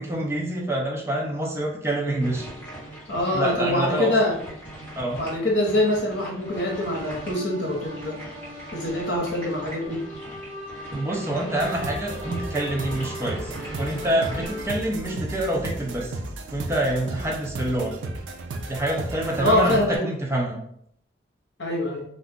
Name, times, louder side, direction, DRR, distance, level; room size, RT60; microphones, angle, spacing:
voice 1, 0.0-2.5 3.3-4.2 5.0-5.2 10.9-13.5 13.8-16.1 16.5-17.9 18.7-20.6, right 1 dB, 15° right, -1 dB, 0.4 m, -26 dB
sound 1, 2.2-14.5, right 1 dB, 10° left, 1.2 m, -41 dB
voice 2, 3.1-4.4 5.2-8.2 8.7-10.0 19.4-20.0 21.6-22.0, left 1 dB, 65° left, -1 dB, 0.9 m, -24 dB
sound 2, 6.4-14.7, left 1 dB, 35° right, 1.0 m, -40 dB
sound 3, 11.6-20.0, right 2 dB, 75° right, 0.4 m, -34 dB
2.5 x 2.3 x 3.6 m, 0.69 s
head